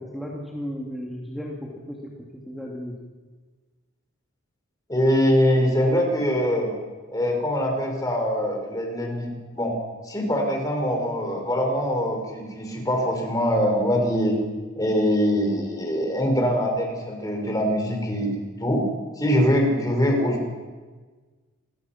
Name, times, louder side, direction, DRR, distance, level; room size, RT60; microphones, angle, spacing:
voice 1, 0.1-2.0 2.3-3.0, equal, ahead, -3 dB, 2.7 m, -34 dB
voice 2, 4.9-6.7 7.1-9.8 10.1-14.4 14.8-18.8 19.2-20.4, equal, 15° left, 2 dB, 5.3 m, -23 dB
28.0 x 22.5 x 6.0 m, 1.4 s
head